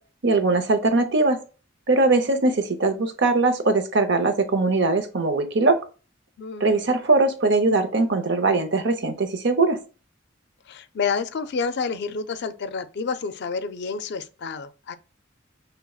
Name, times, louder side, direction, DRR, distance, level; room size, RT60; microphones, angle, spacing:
voice 1, 0.2-1.4 1.9-5.8 6.6-9.8, right 3 dB, 65° right, 0.7 m, -21 dB
voice 2, 6.4-6.8 10.7-15.0, left 5 dB, 60° left, 0.4 m, -29 dB
6.0 x 3.3 x 2.3 m
head